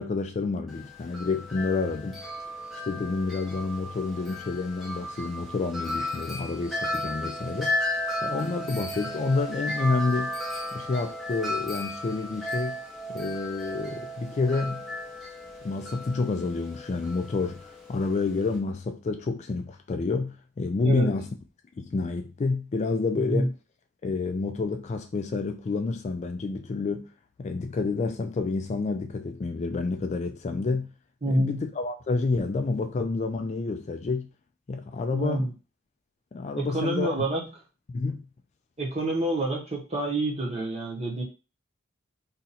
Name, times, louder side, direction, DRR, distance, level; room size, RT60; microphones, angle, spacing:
voice 1, 0.0-2.2 2.8-7.8 8.2-10.4 10.7-12.8 13.1-14.8 15.6-21.3 21.8-23.5 24.0-27.1 27.4-30.9 31.3-34.3 34.7-35.5 36.3-37.2 37.9-38.2, left 3 dB, 35° left, 0.3 m, -29 dB
Wind chime, 0.7-18.6, left 1 dB, ahead, 0.8 m, -35 dB
voice 2, 23.1-23.5 31.2-31.6 35.1-35.5 36.6-37.4 38.8-41.2, right 1 dB, 30° right, 1.1 m, -27 dB
2.8 x 2.6 x 4.1 m
head